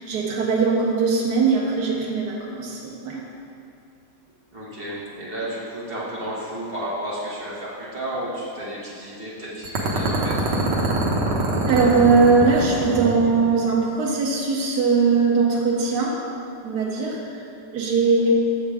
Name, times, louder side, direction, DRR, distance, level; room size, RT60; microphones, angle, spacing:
voice 1, 0.0-3.2 11.7-16.2 16.6-17.4 17.7-18.5, right 4 dB, 70° right, -3 dB, 1.4 m, -20 dB
voice 2, 4.5-10.4, right 1 dB, 35° right, -7 dB, 1.5 m, -32 dB
sound 1, 9.6-13.5, right 2 dB, 85° right, 1.6 m, -24 dB
7.0 x 6.8 x 3.5 m, 2.5 s
omnidirectional pair, 1.8 m